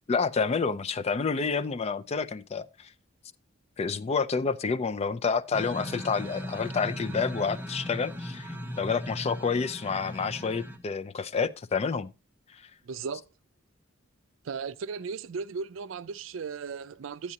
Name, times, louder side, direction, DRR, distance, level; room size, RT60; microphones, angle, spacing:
voice 1, 0.1-2.9 3.8-12.1, left 5 dB, 30° left, 0.4 m, -29 dB
sound 1, 5.5-10.8, equal, 10° right, 0.8 m, -38 dB
voice 2, 12.8-13.3 14.4-17.3, right 5 dB, 75° right, 0.4 m, -36 dB
12.0 x 8.5 x 2.8 m
head